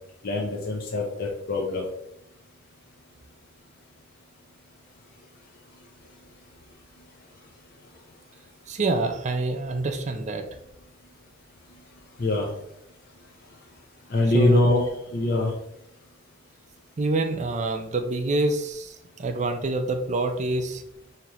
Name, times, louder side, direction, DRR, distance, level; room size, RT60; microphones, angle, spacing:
voice 1, 0.2-1.9 12.2-12.5 14.1-15.5, left 2 dB, 50° left, -2 dB, 0.6 m, -23 dB
voice 2, 8.7-10.4 14.3-14.8 17.0-20.8, right 2 dB, 40° right, 7 dB, 0.5 m, -26 dB
4.9 x 2.9 x 2.9 m, 0.79 s
head